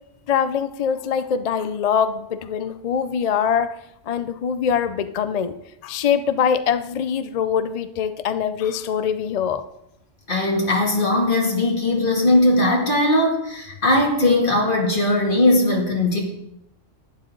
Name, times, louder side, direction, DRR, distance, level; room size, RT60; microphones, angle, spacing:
voice 1, 0.3-3.7 4.1-5.5 5.8-9.6, left 7 dB, 65° left, 11 dB, 0.4 m, -23 dB
voice 2, 10.3-16.2, left 1 dB, 40° left, -1 dB, 2.3 m, -19 dB
11.5 x 10.5 x 3.8 m, 0.83 s
omnidirectional pair, 1.3 m